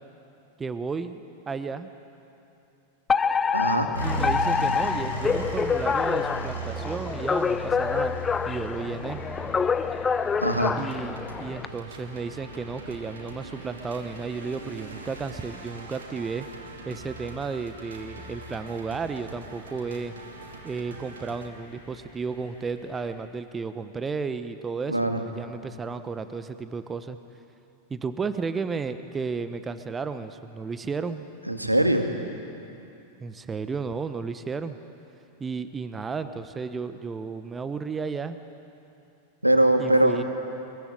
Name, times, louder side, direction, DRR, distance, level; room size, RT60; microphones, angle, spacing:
voice 1, 0.6-1.9 4.0-8.1 8.5-9.2 10.8-16.5 16.8-20.1 20.6-27.2 27.9-31.2 33.2-34.8 35.4-38.4 39.8-40.2, right 5 dB, 15° right, 11 dB, 1.1 m, -33 dB
Alarm, 3.1-11.7, left 6 dB, 15° left, 0.7 m, -27 dB
voice 2, 3.5-3.9 10.4-10.7 24.9-25.2 31.5-32.1 39.4-40.2, right 1 dB, 85° right, 5 dB, 2.1 m, -21 dB
sound 1, 3.9-23.1, right 1 dB, 80° left, 6.8 m, -39 dB
sound 2, 10.4-21.5, right 3 dB, 70° right, 2.7 m, -44 dB
23.0 x 22.5 x 9.0 m, 2.8 s
figure-of-eight pair, 90°, 0 cm